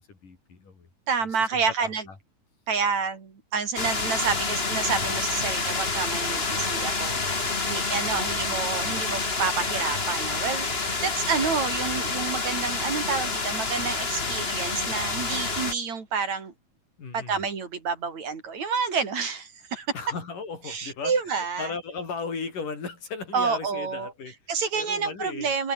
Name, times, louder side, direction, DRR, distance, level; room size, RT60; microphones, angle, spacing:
voice 1, 0.0-0.9 1.5-2.2 8.1-8.4 8.8-9.2 17.0-17.4 19.9-24.3 24.7-25.6, left 5 dB, 55° left, 7.0 m, -37 dB
voice 2, 1.1-2.0 2.7-7.2 7.7-16.5 17.1-19.9 20.7-21.7 23.3-24.1 24.5-25.7, right 5 dB, 45° right, 4.5 m, -29 dB
sound 1, 3.8-15.7, left 3 dB, 20° left, 1.6 m, -28 dB
omnidirectional pair, 4.5 m